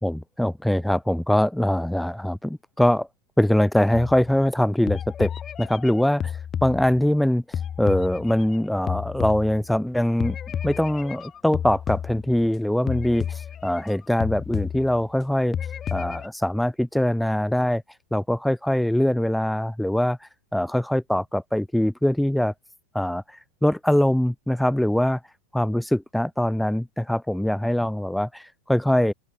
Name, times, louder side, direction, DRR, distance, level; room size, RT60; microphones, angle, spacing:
voice 1, 0.0-3.1 3.4-5.3 5.6-10.4 10.6-15.6 15.9-17.8 18.1-22.5 22.9-25.2 25.5-29.1, left 1 dB, ahead, 0.7 m, -23 dB
sound 1, 3.9-4.5 4.9-7.2 7.5-9.9 10.2-12.6 12.9-14.0 14.2-15.2 15.5-16.3, left 8 dB, 20° left, 3.8 m, -32 dB
open air
supercardioid pair, 160°, 0 cm